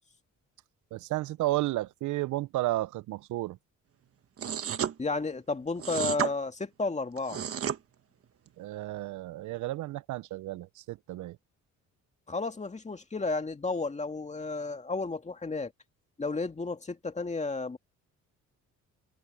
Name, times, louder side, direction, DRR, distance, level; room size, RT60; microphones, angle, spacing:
voice 1, 0.9-3.6 8.6-11.4, right 17 dB, 75° right, 0.5 m, -32 dB
sound 1, 4.4-4.9 5.8-6.3 7.2-7.8, right 8 dB, 50° right, 1.3 m, -31 dB
voice 2, 5.0-7.4 12.3-15.7 16.2-17.8, left 3 dB, 25° left, 2.3 m, -32 dB
cardioid pair, 90°, 30 cm